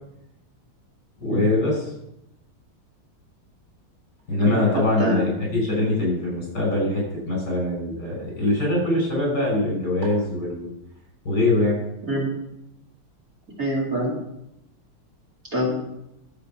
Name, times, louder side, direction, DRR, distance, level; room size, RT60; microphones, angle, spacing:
voice 1, 1.2-1.9 4.3-10.7 11.2-11.8, left 2 dB, 45° left, -2 dB, 5.9 m, -23 dB
voice 2, 4.4-5.5 12.1-12.3 13.6-14.1 15.5-15.7, equal, 40° right, -4 dB, 2.8 m, -25 dB
11.5 x 7.9 x 5.9 m, 0.84 s
omnidirectional pair, 2.4 m